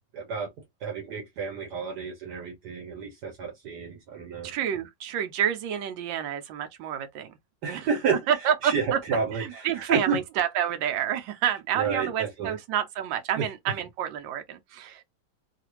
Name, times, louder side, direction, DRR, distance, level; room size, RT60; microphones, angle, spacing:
voice 1, 0.1-0.5 0.8-4.5 7.6-8.2 8.6-8.8 9.1-10.2 11.8-12.5, right 5 dB, 70° right, 1.3 m, -30 dB
voice 2, 4.4-7.3 7.7-7.9 8.3-9.0 9.3-15.0, right 9 dB, 90° right, 1.3 m, -29 dB
3.2 x 2.4 x 2.9 m
omnidirectional pair, 2.0 m